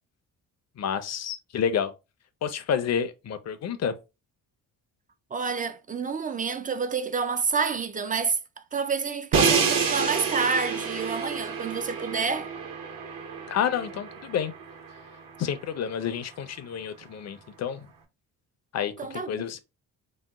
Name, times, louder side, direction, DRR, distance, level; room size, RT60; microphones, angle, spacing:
voice 1, 0.8-1.9 2.4-4.0 13.5-14.5 15.4-17.8 18.7-19.6, left 8 dB, 35° left, 0.6 m, -29 dB
voice 2, 5.3-8.4 8.7-12.5 19.0-19.4, right 5 dB, 20° right, 0.4 m, -28 dB
Crash cymbal, 9.3-15.3, right 5 dB, 50° right, 0.9 m, -28 dB
3.0 x 2.0 x 3.5 m
hypercardioid pair, 50°, 44 cm